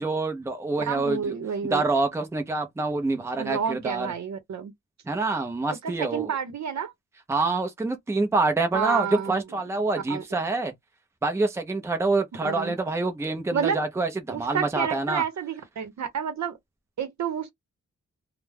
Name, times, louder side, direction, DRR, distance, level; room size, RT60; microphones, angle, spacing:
voice 1, 0.0-1.4 1.6-4.1 5.1-6.3 7.3-10.7 11.2-15.2, right 3 dB, 10° right, 0.5 m, -26 dB
voice 2, 0.9-1.8 3.4-4.7 5.8-6.9 8.7-9.4 10.1-10.2 12.4-12.7 13.5-13.8 14.3-16.6 17.0-17.5, right 7 dB, 65° right, 0.8 m, -29 dB
2.2 x 2.1 x 3.3 m
wide cardioid pair, 125°, 30 cm